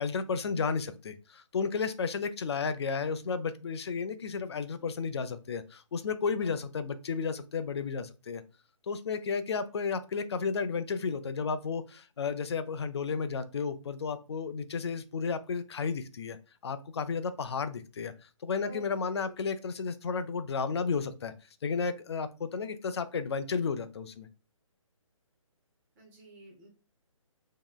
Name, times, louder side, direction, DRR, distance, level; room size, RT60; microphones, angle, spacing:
voice 1, 0.0-8.4 8.8-16.4 16.6-18.1 18.4-21.3 21.6-24.3, left 5 dB, 50° left, 11 dB, 0.4 m, -33 dB
voice 2, 18.6-19.3 26.0-26.7, right 2 dB, 10° right, -1 dB, 0.5 m, -51 dB
2.9 x 2.8 x 2.2 m, 0.32 s
hypercardioid pair, 160°, 17 cm